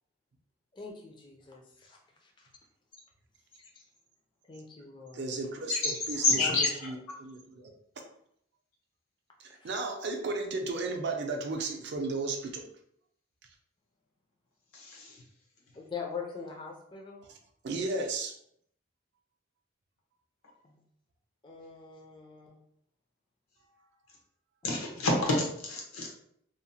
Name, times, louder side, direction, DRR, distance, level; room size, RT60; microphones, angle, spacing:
voice 1, 0.7-2.5 3.6-3.8 4.5-5.3 9.5-9.7 15.8-17.2 20.6-20.8 21.4-22.6 24.6-24.8, left 5 dB, 20° left, 0 dB, 0.4 m, -43 dB
voice 2, 5.1-7.7 9.4-12.7 17.6-18.3, right 3 dB, 50° right, 3 dB, 0.4 m, -34 dB
voice 3, 6.2-6.9 14.7-15.2 24.6-26.2, left 2 dB, 85° left, -1 dB, 0.8 m, -28 dB
2.8 x 2.0 x 2.7 m, 0.70 s
head